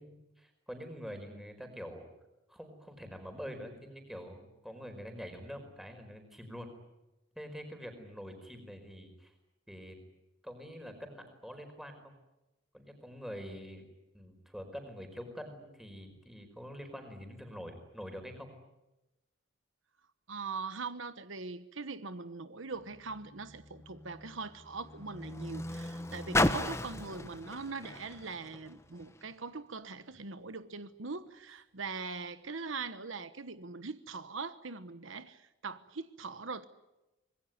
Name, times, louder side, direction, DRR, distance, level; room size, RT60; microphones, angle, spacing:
voice 1, 0.0-2.1 2.5-6.7 7.3-9.3 9.7-10.0 10.4-12.1 12.7-13.8 14.1-18.6, equal, ahead, 5 dB, 4.9 m, -45 dB
voice 2, 20.3-36.7, right 4 dB, 75° right, 12 dB, 1.2 m, -41 dB
Car, 22.7-29.3 30.1-30.2, left 2 dB, 15° left, 1.1 m, -36 dB
26.0 x 21.0 x 9.6 m, 0.98 s
head